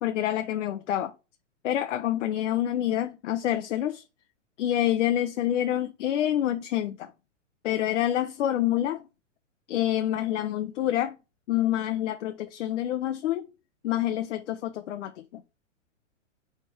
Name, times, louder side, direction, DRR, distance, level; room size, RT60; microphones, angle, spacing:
voice 1, 0.0-1.1 1.6-4.0 4.6-7.1 7.6-9.0 9.7-11.2 11.5-13.5 13.8-15.4, left 12 dB, 70° left, 0.6 m, -27 dB
3.4 x 2.9 x 4.7 m
hypercardioid pair, 140°, 38 cm